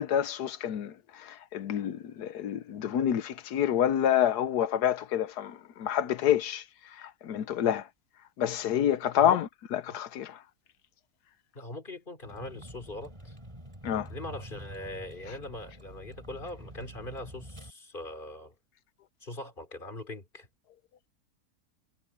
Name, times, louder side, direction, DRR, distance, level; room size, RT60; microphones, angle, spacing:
voice 1, 0.0-6.6 7.0-7.9 8.4-10.4 13.8-14.1, left 10 dB, 85° left, 1.4 m, -28 dB
voice 2, 11.5-13.4 14.1-18.5 19.2-20.5, left 1 dB, 30° left, 3.3 m, -41 dB
Vehicle, 12.2-17.7, right 1 dB, 15° right, 5.0 m, -47 dB
omnidirectional pair, 1.7 m